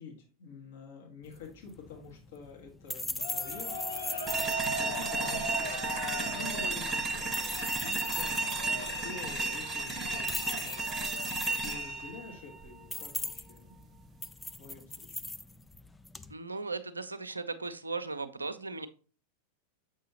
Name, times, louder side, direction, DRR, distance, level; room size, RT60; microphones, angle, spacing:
voice 1, 0.0-14.0 14.6-15.2, left 4 dB, 55° left, 0 dB, 1.5 m, -49 dB
sound 1, 1.2-16.3, left 2 dB, 10° left, 0.3 m, -41 dB
sound 2, 3.2-12.1, left 1 dB, 80° left, 1.0 m, -39 dB
sound 3, 4.3-13.3, right 3 dB, 15° right, 0.7 m, -34 dB
voice 2, 16.3-18.9, right 3 dB, 75° right, 11 dB, 0.5 m, -37 dB
7.2 x 5.5 x 2.8 m, 0.38 s
figure-of-eight pair, 90°, 0 cm